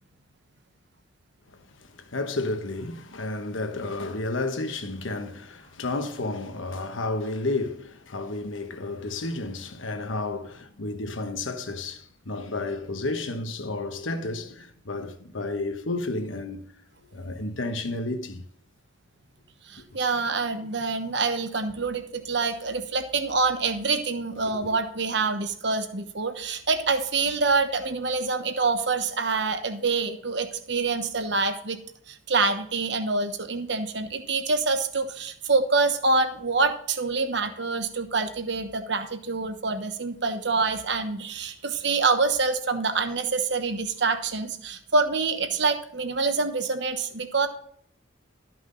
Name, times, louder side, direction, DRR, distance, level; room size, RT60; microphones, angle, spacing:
voice 1, 1.5-16.7 17.0-18.4 19.8-19.9 24.5-24.7, left 2 dB, 75° left, 1.2 m, -32 dB
voice 2, 19.7-31.8 32.1-47.5, right 4 dB, 60° right, 1.1 m, -26 dB
13.0 x 6.0 x 3.9 m
head